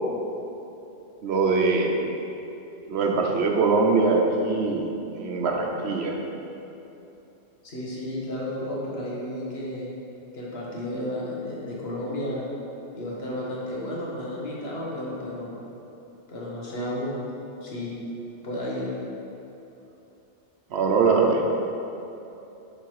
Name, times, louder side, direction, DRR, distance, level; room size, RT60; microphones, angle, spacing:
voice 1, 1.2-1.9 2.9-4.9 5.1-6.2 20.7-21.4, right 4 dB, 85° right, 1 dB, 1.0 m, -22 dB
voice 2, 7.6-9.9 10.3-12.5 12.9-15.6 16.3-17.2 17.6-17.9 18.4-18.9, left 1 dB, 75° left, -5 dB, 1.5 m, -32 dB
7.4 x 4.0 x 4.7 m, 2.9 s
omnidirectional pair, 1.1 m